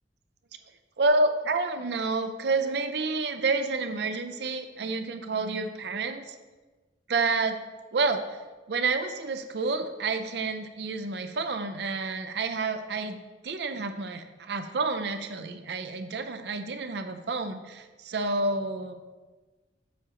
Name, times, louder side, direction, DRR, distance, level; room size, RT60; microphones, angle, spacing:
voice 1, 1.0-6.4 7.1-7.6 7.9-8.4 8.7-18.9, right 3 dB, 70° right, 8 dB, 0.5 m, -29 dB
7.0 x 6.4 x 2.9 m, 1.3 s
head